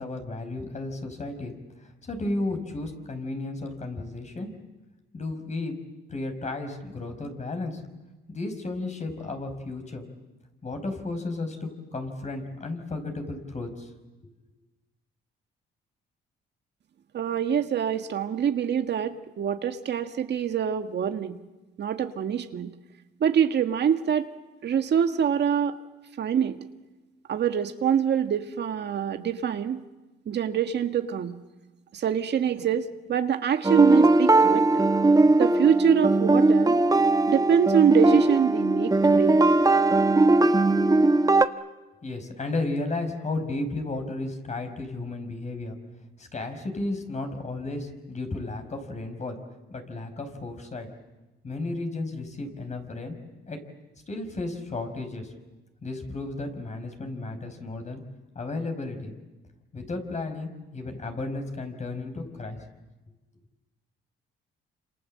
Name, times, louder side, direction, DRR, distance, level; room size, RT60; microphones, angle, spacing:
voice 1, 0.0-1.5 1.8-4.5 5.1-5.7 6.1-7.8 8.3-10.0 10.6-13.9 42.0-45.8 46.2-49.4 49.7-50.9 51.4-53.2 53.5-53.6 54.1-55.3 55.8-58.0 58.3-59.1 59.7-62.6, left 2 dB, 35° left, 6 dB, 5.3 m, -33 dB
voice 2, 17.1-21.4 21.8-22.7 23.2-24.3 24.6-25.8 26.2-26.6 27.3-29.8 30.3-31.4 31.9-34.8 35.4-36.8 37.3-39.4, right 8 dB, 60° right, 7 dB, 1.8 m, -25 dB
sound 1, 33.6-41.5, right 2 dB, 20° right, 1.2 m, -19 dB
28.5 x 27.0 x 7.7 m, 1.1 s
cardioid pair, 90°, 20 cm